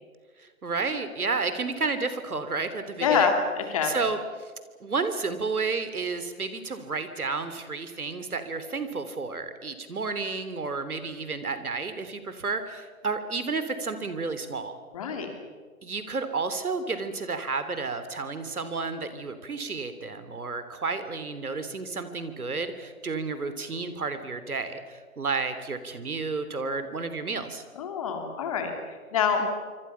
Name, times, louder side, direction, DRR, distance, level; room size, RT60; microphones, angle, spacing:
voice 1, 0.4-3.3 3.8-4.5 4.8-14.7 15.8-27.6 29.4-29.5, right 4 dB, 80° right, 10 dB, 3.3 m, -31 dB
voice 2, 3.0-4.0 14.9-15.3 27.7-29.4, left 6 dB, 25° left, 5 dB, 2.7 m, -26 dB
26.5 x 25.5 x 5.8 m, 1.5 s
hypercardioid pair, 165°, 44 cm